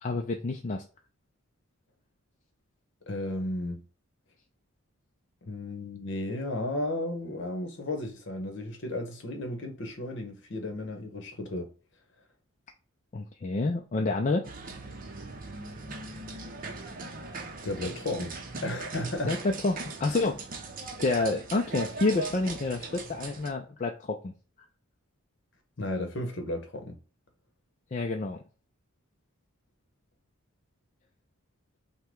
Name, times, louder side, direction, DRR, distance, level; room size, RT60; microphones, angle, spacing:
voice 1, 0.0-0.8 13.1-14.5 19.3-20.5 21.0-24.3 27.9-28.4, left 3 dB, 35° left, 0.4 m, -28 dB
voice 2, 3.1-3.8 5.4-11.7 17.6-18.3 18.6-19.4 25.8-27.0, left 1 dB, 55° left, 1.1 m, -34 dB
sound 1, 14.4-23.5, right 3 dB, 40° right, 0.6 m, -40 dB
5.6 x 2.2 x 3.7 m
head